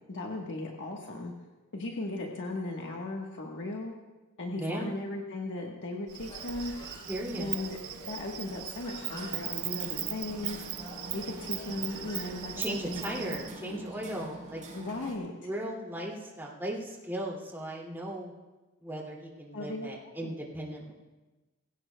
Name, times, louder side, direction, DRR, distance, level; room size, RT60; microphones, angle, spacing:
voice 1, 0.1-1.3 1.7-3.9 4.4-6.7 7.3-10.6 11.1-13.8 14.7-15.3 19.5-20.3, left 2 dB, 60° left, 0 dB, 1.3 m, -37 dB
voice 2, 4.5-4.9 7.1-7.6 12.6-14.6 15.4-18.3 18.8-20.9, right 1 dB, 10° right, -3 dB, 2.4 m, -37 dB
Insect, 6.1-13.5, right 12 dB, 85° right, 0.7 m, -39 dB
Human voice, 6.2-13.3, left 1 dB, 25° left, 4.6 m, -51 dB
Hammer, 9.0-15.2, right 1 dB, 40° right, 4.1 m, -45 dB
21.5 x 16.5 x 2.3 m, 1.2 s
head